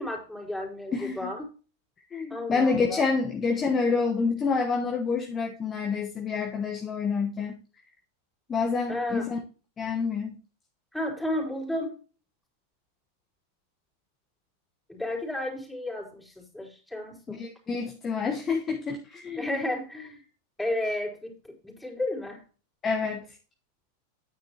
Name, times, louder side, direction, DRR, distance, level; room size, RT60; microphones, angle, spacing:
voice 1, 0.0-1.5 2.3-3.1 8.9-9.3 10.9-12.0 14.9-17.4 19.3-20.2 20.6-21.4 21.6-22.4, left 1 dB, 5° left, -2 dB, 3.8 m, -32 dB
voice 2, 0.9-1.3 2.1-7.6 8.5-9.4 9.8-10.3 17.3-19.6 22.8-23.2, left 4 dB, 20° left, 2 dB, 1.2 m, -28 dB
9.8 x 9.1 x 2.9 m, 0.36 s
figure-of-eight pair, 90°, 0 cm